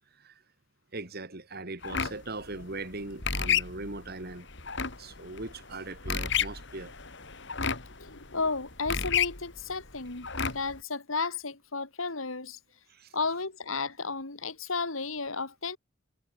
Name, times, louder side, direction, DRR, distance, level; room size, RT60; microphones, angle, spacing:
voice 1, 0.9-4.5 4.9-6.9 10.4-10.5 12.9-13.1, right 2 dB, 50° right, 2.7 m, -40 dB
sound 1, 1.8-10.8, left 7 dB, 60° left, 4.0 m, -32 dB
voice 2, 7.9-12.6 13.1-15.8, left 4 dB, 80° left, 2.7 m, -33 dB
head